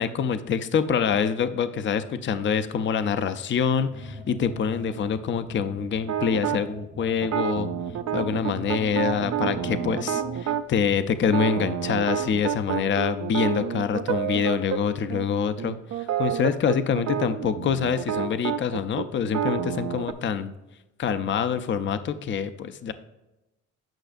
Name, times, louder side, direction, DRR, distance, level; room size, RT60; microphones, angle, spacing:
voice 1, 0.0-7.7 8.1-20.5 21.0-22.9, left 7 dB, 40° left, 11 dB, 0.5 m, -26 dB
sound 1, 3.9-10.6, right 4 dB, 25° right, 0.9 m, -40 dB
sound 2, 6.1-6.6 7.2-10.6 11.2-14.8 15.1-15.3 15.6-20.1, right 9 dB, 60° right, 0.6 m, -29 dB
9.0 x 5.6 x 2.5 m, 0.96 s
cardioid pair, 90°, 30 cm